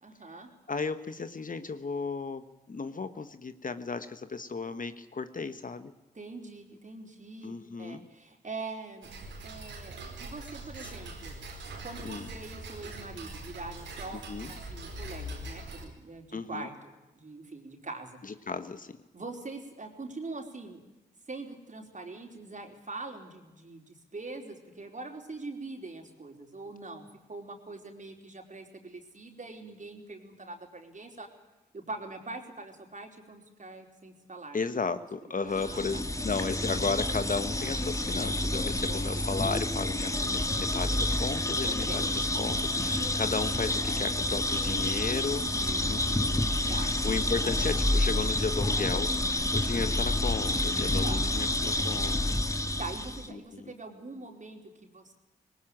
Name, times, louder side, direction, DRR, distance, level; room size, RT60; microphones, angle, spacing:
voice 1, 0.0-0.5 6.1-9.1 9.4-11.3 11.8-18.2 19.1-20.8 21.3-31.3 31.7-34.6 35.5-36.0 38.9-39.3 41.7-42.1 45.4-45.9 46.7-47.0 51.0-51.2 52.8-55.1, right 3 dB, 40° right, 4 dB, 4.6 m, -43 dB
voice 2, 0.7-5.9 7.4-8.0 12.0-12.3 14.3-14.5 16.3-16.7 18.5-19.0 34.5-45.5 45.9-52.2 53.3-53.7, left 4 dB, 45° left, 11 dB, 1.4 m, -34 dB
Tick-tock, 9.0-15.8, right 2 dB, 80° right, 4.6 m, -42 dB
sound 1, 35.5-53.3, left 1 dB, 15° left, 2.0 m, -29 dB
19.0 x 18.5 x 9.0 m, 1.0 s
supercardioid pair, 40°, 19 cm